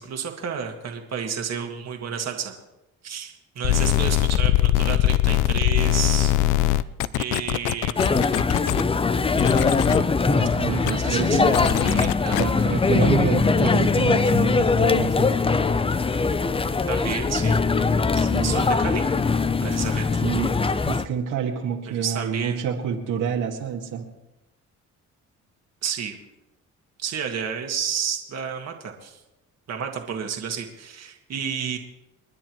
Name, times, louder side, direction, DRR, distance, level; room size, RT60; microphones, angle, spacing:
voice 1, 0.0-2.6 3.0-6.8 7.1-8.4 10.6-12.4 16.9-17.6 18.4-19.0 19.6-20.2 21.9-22.6 25.8-26.2 27.0-29.2 29.7-31.8, right 7 dB, 60° right, 3 dB, 1.8 m, -31 dB
sound 1, 3.6-8.8 9.4-10.0 10.9-11.0 11.5-12.4, left 15 dB, 90° left, 0.5 m, -21 dB
sound 2, 8.0-21.1, left 4 dB, 20° left, 0.6 m, -21 dB
voice 2, 10.3-11.7 12.4-15.3 18.1-18.6 20.2-20.6 20.9-24.1, right 7 dB, 85° right, 0 dB, 2.0 m, -27 dB
29.5 x 9.9 x 3.1 m, 0.96 s
cardioid pair, 90°, 30 cm